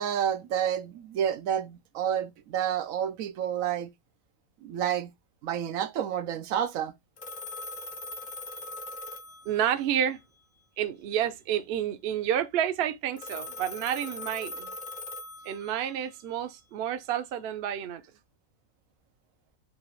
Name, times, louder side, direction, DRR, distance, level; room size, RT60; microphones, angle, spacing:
voice 1, 0.0-3.9 4.6-5.1 5.4-6.9, right 9 dB, 90° right, 1.0 m, -29 dB
Telephone, 7.2-10.0 13.2-16.0, left 2 dB, 45° left, 0.7 m, -40 dB
voice 2, 9.5-10.2 10.8-14.7 15.4-18.0, right 10 dB, 60° right, 0.7 m, -30 dB
4.0 x 2.4 x 4.6 m
omnidirectional pair, 1.4 m